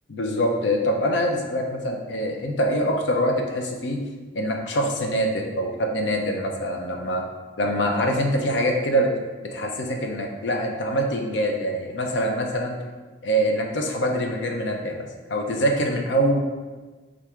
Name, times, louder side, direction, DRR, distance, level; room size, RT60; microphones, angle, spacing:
voice 1, 0.1-4.0 4.3-7.3 7.6-9.1 9.4-12.8 13.2-16.4, equal, 85° left, 2 dB, 0.6 m, -24 dB
3.5 x 2.5 x 4.4 m, 1.3 s
head